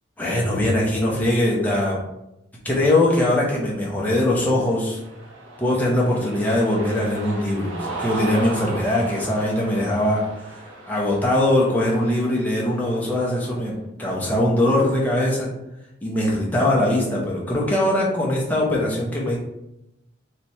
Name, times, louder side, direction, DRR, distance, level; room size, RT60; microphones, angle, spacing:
voice 1, 0.2-2.0 2.6-5.0 5.6-10.3 10.5-15.5 16.0-19.4, left 1 dB, 10° left, -4 dB, 0.8 m, -21 dB
Cheering, 4.5-13.7, right 2 dB, 80° right, 0.8 m, -37 dB
3.3 x 3.0 x 4.2 m, 0.88 s
head